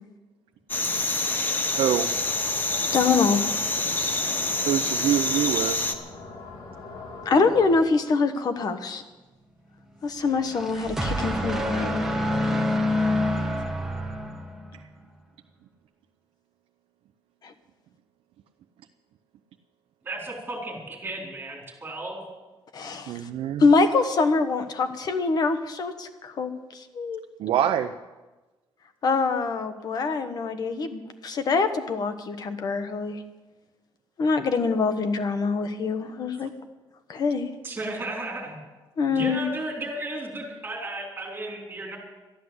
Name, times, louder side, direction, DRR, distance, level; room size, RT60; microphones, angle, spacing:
sound 1, 0.7-5.9, left 2 dB, 20° left, 1.0 m, -26 dB
sound 2, 1.7-7.8, left 3 dB, 70° left, 2.6 m, -42 dB
voice 1, 1.7-2.1 4.6-5.9 14.7-14.8 23.1-23.6 27.4-27.9, right 10 dB, 90° right, 6 dB, 0.6 m, -25 dB
voice 2, 2.8-3.4 4.2-4.4 7.2-9.0 10.0-12.1 17.4-17.5 22.7-23.1 23.6-27.2 29.0-33.2 34.2-36.5 37.1-37.5 39.0-39.4, left 4 dB, 45° left, 8 dB, 1.2 m, -24 dB
sound 3, 10.3-14.9, left 1 dB, 5° right, 1.5 m, -27 dB
voice 3, 20.0-22.2 37.6-38.6 39.1-42.0, right 2 dB, 20° right, -1 dB, 4.3 m, -34 dB
13.0 x 11.0 x 7.9 m, 1.2 s
cardioid pair, 155°, 9 cm